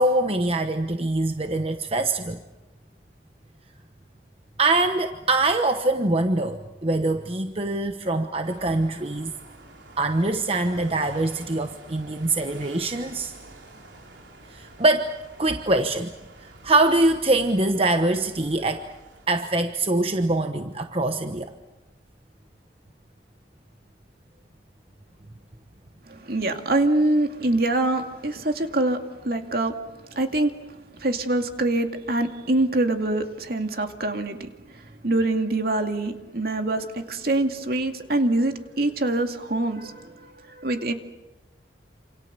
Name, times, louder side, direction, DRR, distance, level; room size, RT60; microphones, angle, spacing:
voice 1, 0.0-2.4 4.6-9.3 10.0-13.3 14.5-16.1 16.4-18.9 19.3-21.5, right 2 dB, 35° right, 6 dB, 1.1 m, -23 dB
sound 1, 8.4-19.3, right 2 dB, 85° right, 4.1 m, -48 dB
voice 2, 26.1-29.7 30.1-40.9, right 2 dB, 55° right, 5 dB, 2.4 m, -25 dB
28.0 x 27.5 x 6.9 m, 1.1 s
head